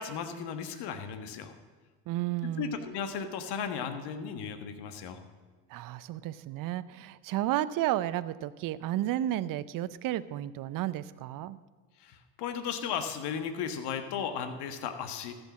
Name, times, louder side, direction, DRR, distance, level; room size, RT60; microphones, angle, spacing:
voice 1, 0.0-1.5 2.4-5.2 12.0-15.4, left 7 dB, 60° left, 8 dB, 1.5 m, -35 dB
voice 2, 2.1-2.8 5.7-11.6, right 13 dB, 45° right, 15 dB, 0.6 m, -32 dB
14.0 x 6.8 x 7.3 m, 1.4 s
hypercardioid pair, 75°, 46 cm